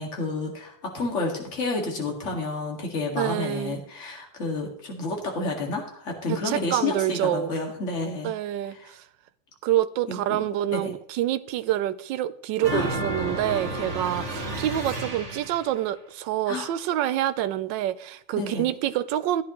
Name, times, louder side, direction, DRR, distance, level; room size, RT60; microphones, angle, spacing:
voice 1, 0.0-8.3 8.7-8.9 10.1-10.4 10.7-10.9 12.7-12.9 16.5-16.7 18.3-18.6, left 3 dB, 40° left, 2.3 m, -30 dB
voice 2, 3.1-3.8 6.3-7.6 8.2-9.0 9.6-19.4, right 12 dB, 75° right, 1.3 m, -27 dB
sound 1, 12.6-15.8, right 2 dB, 35° right, 2.2 m, -31 dB
15.0 x 9.7 x 3.0 m
omnidirectional pair, 2.1 m